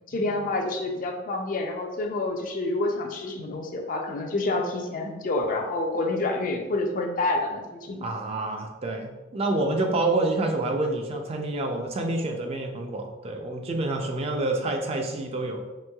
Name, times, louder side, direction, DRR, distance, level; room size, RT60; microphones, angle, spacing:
voice 1, 0.1-8.1, left 2 dB, 45° left, 3 dB, 0.4 m, -28 dB
voice 2, 8.0-15.6, right 2 dB, 30° right, 3 dB, 0.3 m, -28 dB
3.0 x 2.7 x 2.2 m, 1.2 s
head